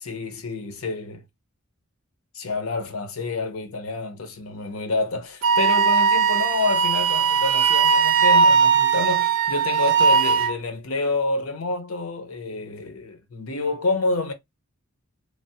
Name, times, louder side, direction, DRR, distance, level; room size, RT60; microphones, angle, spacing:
voice 1, 0.0-1.2 2.3-14.3, left 3 dB, 85° left, 0.7 m, -28 dB
Wind instrument woodwind instrument, 5.4-10.5, right 6 dB, 85° right, 0.5 m, -19 dB
3.2 x 2.0 x 2.7 m
head